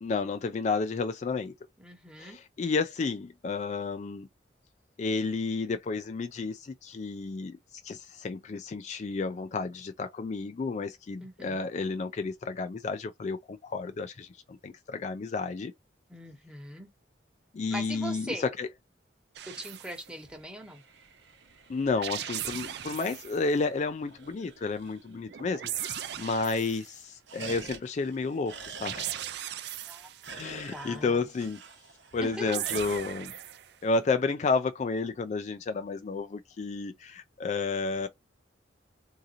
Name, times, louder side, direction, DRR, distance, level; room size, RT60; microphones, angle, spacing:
voice 1, 0.0-1.5 2.2-4.3 5.0-15.7 17.5-18.7 21.7-29.2 30.3-31.6 32.1-33.3 33.8-38.1, left 4 dB, 40° left, 0.3 m, -31 dB
voice 2, 1.8-2.4 11.2-11.6 16.1-16.9 17.7-18.5 19.4-20.8 29.8-30.1 30.7-31.3 32.2-32.6, equal, 5° right, 0.8 m, -40 dB
sound 1, 19.4-20.0 21.8-23.4 25.3-26.9 28.7-30.3 32.1-33.7, right 11 dB, 60° right, 0.4 m, -38 dB
sound 2, 20.1-25.4 25.7-25.8 26.0-26.5 26.8-33.0, right 5 dB, 80° right, 0.9 m, -48 dB
3.8 x 2.8 x 2.5 m
head